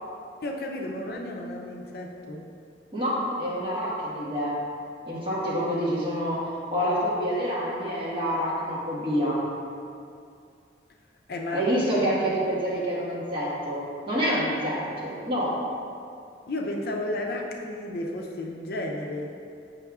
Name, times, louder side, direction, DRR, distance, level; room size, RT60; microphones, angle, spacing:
voice 1, 0.4-2.5 11.3-11.7 16.5-19.4, left 1 dB, 55° left, 0 dB, 0.5 m, -33 dB
voice 2, 2.9-4.6 5.1-9.4 11.5-15.6, equal, 30° right, -8 dB, 1.5 m, -27 dB
8.1 x 5.5 x 2.3 m, 2.4 s
head